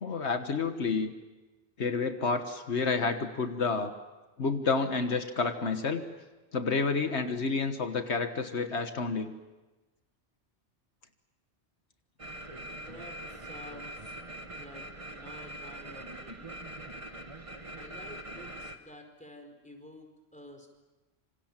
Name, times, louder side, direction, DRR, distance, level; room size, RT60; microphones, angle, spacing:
voice 1, 0.0-1.1 1.8-3.9 4.4-6.0 6.5-9.3, left 4 dB, 75° left, 7 dB, 1.6 m, -29 dB
sound 1, 12.2-18.8, right 1 dB, 30° right, 1.6 m, -43 dB
voice 2, 12.7-14.1 14.6-16.7 17.7-20.7, left 1 dB, 5° left, 4 dB, 4.5 m, -50 dB
27.0 x 26.0 x 7.4 m, 1.1 s
omnidirectional pair, 1.1 m